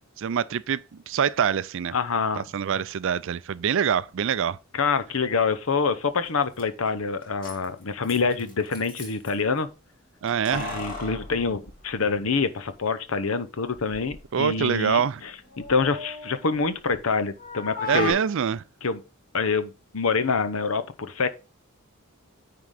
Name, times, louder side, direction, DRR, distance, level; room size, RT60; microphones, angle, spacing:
voice 1, 0.2-1.9 2.4-4.6 10.2-10.8 14.3-15.2 17.9-18.6, right 7 dB, 60° right, 0.4 m, -25 dB
voice 2, 1.9-2.4 4.7-9.7 10.5-15.3 15.6-18.2 18.8-19.0 19.3-21.3, left 4 dB, 70° left, 0.8 m, -26 dB
Keys jangling, 6.3-6.4 6.6-6.7 7.2-9.3 10.3-12.4 12.7-12.8 13.7-14.2 14.6-17.1 17.4-18.1, left 2 dB, 40° left, 2.5 m, -37 dB
9.5 x 3.8 x 4.9 m
head